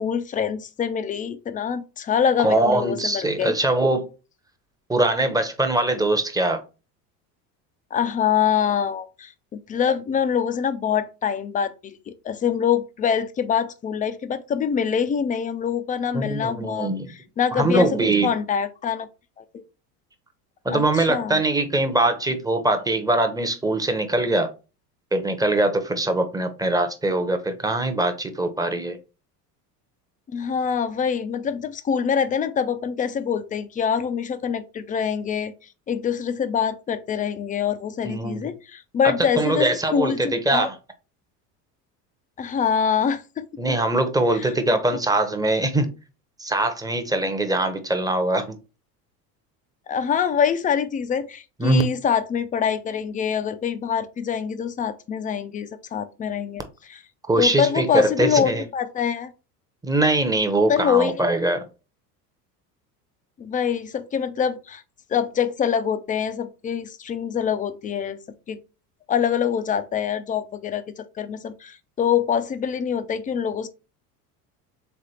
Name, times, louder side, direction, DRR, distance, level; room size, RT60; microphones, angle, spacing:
voice 1, 0.0-3.5 7.9-17.9 18.2-19.1 19.4-19.6 20.7-21.4 30.3-35.5 35.9-40.7 42.4-43.7 44.3-44.5 49.9-56.6 56.9-57.0 57.4-59.3 60.7-61.2 63.4-64.8 65.1-68.2 68.5-68.6 69.1-73.7, left 7 dB, 20° left, 0.4 m, -25 dB
voice 2, 2.4-4.1 4.9-6.6 16.1-17.1 17.5-18.3 20.6-24.5 25.1-29.0 38.0-38.4 39.0-40.7 43.6-45.9 46.4-48.6 51.6-51.8 57.3-58.6 59.8-61.6, right 2 dB, 10° right, 0.7 m, -22 dB
3.7 x 3.4 x 4.2 m
hypercardioid pair, 80°, 47 cm